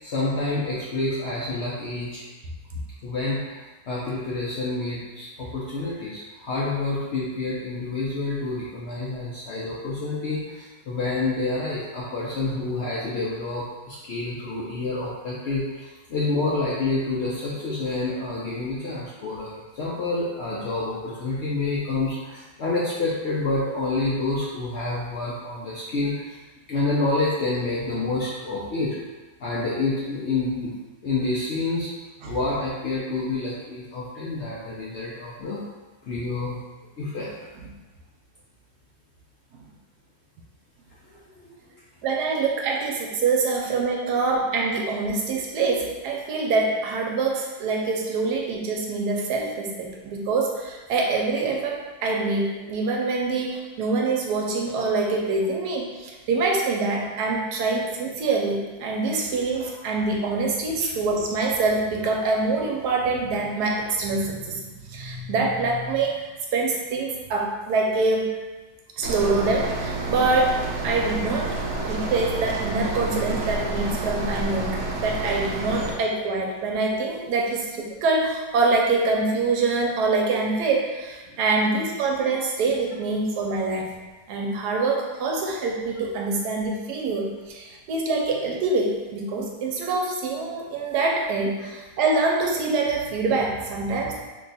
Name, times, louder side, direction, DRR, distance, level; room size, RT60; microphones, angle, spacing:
voice 1, 0.0-2.2 3.0-26.3 26.7-28.9 29.4-30.7 31.0-31.9 32.2-35.6 36.1-36.6 37.0-37.3 41.4-41.5 60.8-60.9, left 2 dB, 70° left, -6 dB, 0.6 m, -28 dB
voice 2, 42.0-66.2 66.5-68.3 69.0-70.5 70.8-71.5 71.8-83.9 84.3-94.2, right 3 dB, 85° right, 0 dB, 1.2 m, -25 dB
sound 1, 69.0-75.9, right 2 dB, 65° right, 0.7 m, -29 dB
3.0 x 2.3 x 3.9 m, 1.2 s
omnidirectional pair, 1.7 m